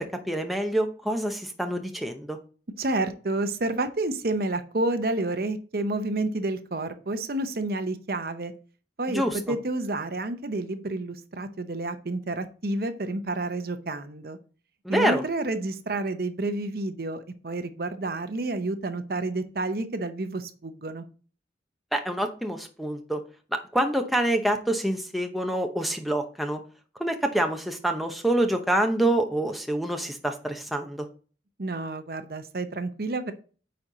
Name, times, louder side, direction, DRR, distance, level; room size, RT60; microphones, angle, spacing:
voice 1, 0.0-2.4 9.1-9.4 14.8-15.2 21.9-23.2 23.7-26.6 27.0-31.0, right 1 dB, ahead, 3 dB, 0.7 m, -26 dB
voice 2, 2.8-8.5 9.0-14.4 14.9-21.0 31.6-33.3, right 2 dB, 55° right, 9 dB, 0.7 m, -30 dB
9.4 x 4.3 x 3.9 m, 0.39 s
head